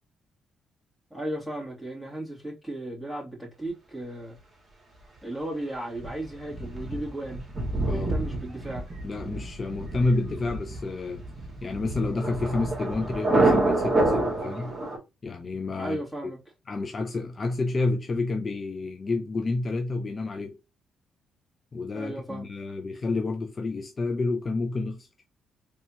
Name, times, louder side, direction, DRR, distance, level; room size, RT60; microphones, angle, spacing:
voice 1, 1.1-4.4 5.2-7.4 7.8-8.9 15.8-16.4 21.9-22.5, right 1 dB, ahead, 2.7 m, -35 dB
Thunder, 6.0-15.0, right 2 dB, 35° right, 2.2 m, -28 dB
voice 2, 9.0-11.2 11.6-14.7 15.2-16.0 16.7-20.6 21.7-25.1, left 3 dB, 35° left, 0.6 m, -29 dB
4.2 x 3.4 x 2.8 m
cardioid pair, 90°, 0 cm